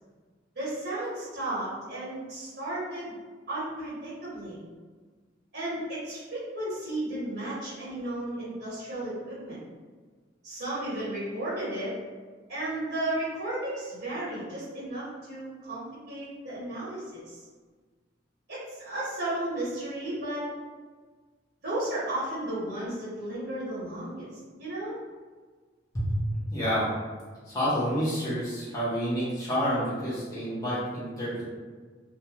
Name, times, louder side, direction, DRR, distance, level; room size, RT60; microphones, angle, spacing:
voice 1, 0.5-3.1 3.5-4.6 5.5-9.6 10.4-11.9 12.5-17.4 18.5-20.4 21.6-24.3 24.6-25.0, right 1 dB, 55° right, -9 dB, 1.0 m, -34 dB
voice 2, 25.9-26.9 27.4-31.4, equal, 20° left, -10 dB, 0.8 m, -29 dB
2.4 x 2.3 x 2.9 m, 1.4 s
head